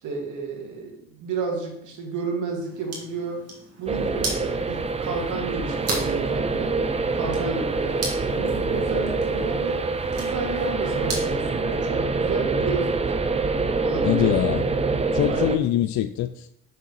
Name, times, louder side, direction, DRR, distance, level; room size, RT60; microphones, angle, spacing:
voice 1, 0.0-3.5 3.8-6.8 7.1-8.0 8.3-9.9 10.2-13.1 13.8-14.4 15.3-15.6, right 4 dB, 80° right, 2.1 m, -31 dB
sound 1, 2.6-11.4, right 2 dB, 50° right, 2.6 m, -37 dB
sound 2, 3.9-15.6, right 3 dB, 20° right, 0.6 m, -25 dB
voice 2, 14.0-14.7 15.1-16.5, left 12 dB, 70° left, 0.4 m, -24 dB
6.7 x 6.5 x 4.0 m
cardioid pair, 90°, 30 cm